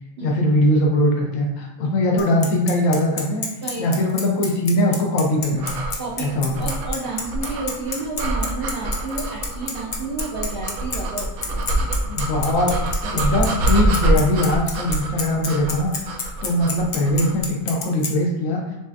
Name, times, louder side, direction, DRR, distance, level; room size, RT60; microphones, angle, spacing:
voice 1, 0.2-3.5 3.8-5.7 6.2-6.7 12.0-15.9 16.4-18.6, left 1 dB, 70° left, 0 dB, 1.1 m, -21 dB
Bicycle, 2.2-18.1, left 4 dB, 50° left, 0.6 m, -28 dB
sound 1, 5.6-17.5, right 1 dB, 90° right, 1.1 m, -26 dB
voice 2, 6.0-6.3 6.6-11.9 13.1-13.3, right 3 dB, 55° right, -3 dB, 0.7 m, -31 dB
6.4 x 2.4 x 2.5 m, 0.98 s
omnidirectional pair, 1.5 m